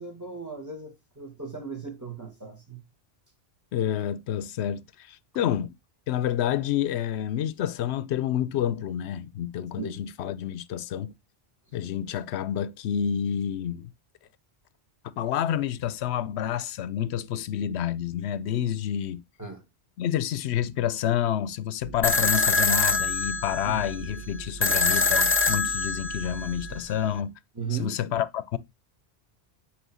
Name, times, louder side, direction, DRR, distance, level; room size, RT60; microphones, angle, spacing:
voice 1, 0.0-2.8 9.8-9.9 19.4-19.6 23.7-24.1 27.6-28.0, right 6 dB, 15° right, 2.1 m, -37 dB
voice 2, 3.7-5.7 6.1-11.1 11.7-13.9 15.2-19.2 20.0-27.3 27.7-28.6, left 10 dB, 85° left, 0.9 m, -29 dB
sound 1, 21.8-26.8, right 4 dB, 45° right, 0.6 m, -42 dB
sound 2, 22.0-27.0, left 4 dB, 15° left, 0.4 m, -25 dB
8.1 x 3.2 x 6.2 m
omnidirectional pair, 1.1 m